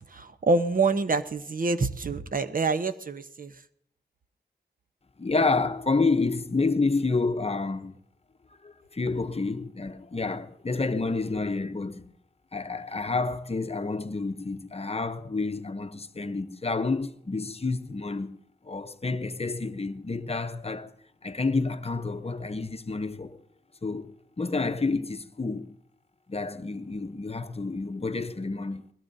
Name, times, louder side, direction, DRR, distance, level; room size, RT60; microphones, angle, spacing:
voice 1, 0.1-3.5, right 3 dB, 50° right, 0.9 m, -26 dB
voice 2, 5.2-8.0 8.6-12.0 12.5-18.4 18.6-20.9 21.2-23.4 23.8-25.8 26.3-28.8, left 3 dB, 35° left, 0.8 m, -29 dB
20.5 x 17.0 x 2.7 m
cardioid pair, 55°, 18 cm